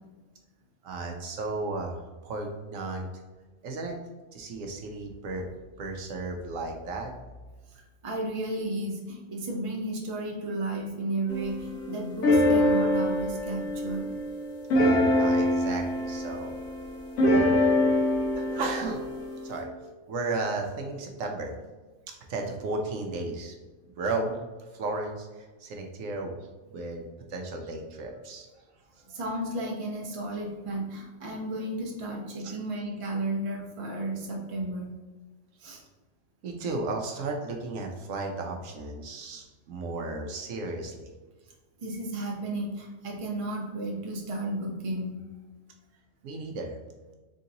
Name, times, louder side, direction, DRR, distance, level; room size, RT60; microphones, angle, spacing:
voice 1, 0.8-3.1 3.6-4.0 4.3-5.5 5.8-7.1 15.2-16.5 18.3-19.0 19.4-19.7 20.1-21.5 22.3-23.6 24.0-28.5 29.0-29.1 32.4-32.6 36.4-41.1 46.2-46.8, right 3 dB, 75° right, 2 dB, 1.0 m, -34 dB
voice 2, 7.7-14.1 29.1-34.9 35.6-35.8 41.8-45.2, right 1 dB, 30° right, -1 dB, 0.7 m, -33 dB
sound 1, 11.3-19.6, left 1 dB, 75° left, 1.3 m, -25 dB
3.9 x 3.7 x 2.8 m, 1.2 s
omnidirectional pair, 1.4 m